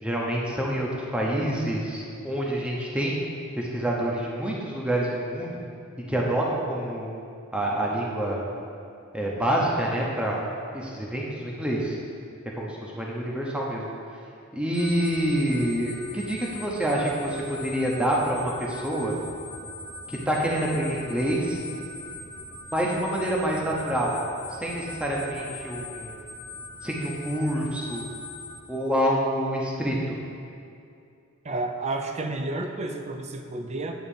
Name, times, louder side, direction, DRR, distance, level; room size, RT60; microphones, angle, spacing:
voice 1, 0.0-3.1 3.6-5.6 6.1-7.2 7.5-8.4 9.1-10.4 10.7-11.9 12.6-13.9 14.5-19.2 20.1-21.6 22.7-24.2 24.6-26.2 26.8-28.0 28.7-30.2, right 1 dB, 5° right, -3 dB, 0.8 m, -27 dB
sound 1, 14.7-28.6, left 2 dB, 30° left, 0.8 m, -41 dB
voice 2, 31.4-33.9, right 2 dB, 30° right, 5 dB, 0.5 m, -31 dB
9.1 x 3.9 x 7.1 m, 2.5 s
head